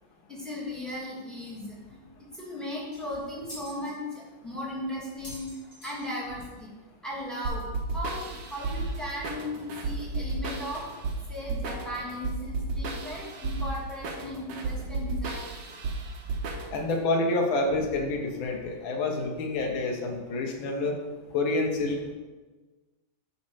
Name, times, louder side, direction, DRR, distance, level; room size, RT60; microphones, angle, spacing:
voice 1, 0.3-2.0 2.4-5.5 5.8-6.7 7.0-7.6 7.9-10.8 11.3-15.5, left 1 dB, ahead, -5 dB, 2.3 m, -36 dB
sound 1, 2.9-3.9 4.5-4.6 5.0-6.6 6.9-7.0 7.2-7.3 8.2-8.3 8.9-9.0 9.6-9.7, equal, 35° left, 3.5 m, -47 dB
sound 2, 7.4-17.0, right 3 dB, 60° right, 1.6 m, -33 dB
voice 2, 16.7-21.0 21.3-22.1, left 2 dB, 65° left, 2 dB, 1.8 m, -28 dB
8.8 x 4.3 x 6.3 m, 1.3 s
omnidirectional pair, 2.4 m